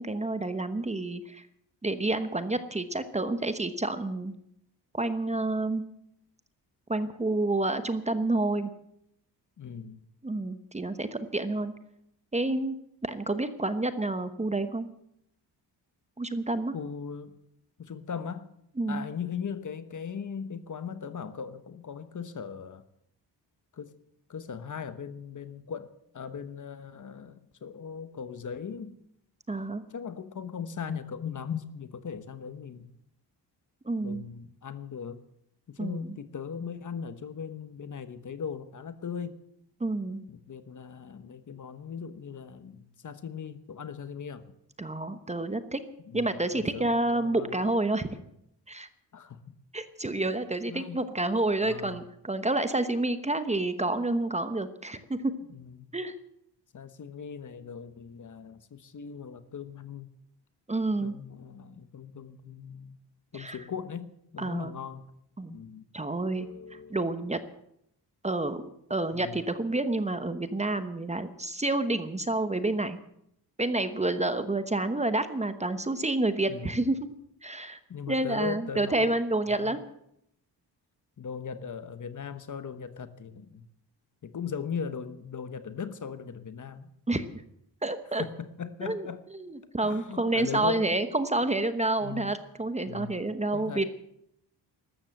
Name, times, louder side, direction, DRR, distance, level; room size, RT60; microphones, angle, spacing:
voice 1, 0.0-1.4 1.8-4.3 4.9-5.8 6.9-8.7 10.2-11.7 12.3-12.8 13.0-14.9 16.2-16.7 18.8-19.1 29.5-29.8 33.8-34.2 35.8-36.2 39.8-40.2 44.8-45.8 46.1-48.1 48.7-48.9 49.7-55.3 55.9-56.1 60.7-61.1 63.3-63.6 64.4-64.7 65.4-65.6 65.9-66.5 66.9-67.4 68.2-68.6 68.9-73.0 73.6-77.0 77.4-77.8 78.1-79.8 87.1-87.3 87.8-88.2 88.8-89.1 89.3-93.9, right 2 dB, 15° right, 10 dB, 1.0 m, -29 dB
voice 2, 9.6-10.0 16.7-17.3 17.8-18.5 18.9-22.8 23.7-23.9 24.3-28.9 29.9-32.9 34.0-35.2 35.7-39.4 40.3-44.4 46.1-46.3 46.5-47.6 49.1-49.5 50.7-51.0 51.6-52.0 55.5-55.9 56.7-60.1 61.0-63.0 63.3-65.0 65.5-65.8 66.3-67.0 69.1-69.4 76.5-76.9 77.9-79.1 79.5-79.8 81.2-83.7 84.2-86.9 88.2-89.2 89.8-91.0 92.0-92.4 92.9-93.2 93.5-93.9, left 6 dB, 45° left, 11 dB, 1.2 m, -39 dB
14.0 x 12.5 x 7.9 m, 0.75 s
wide cardioid pair, 125°, 42 cm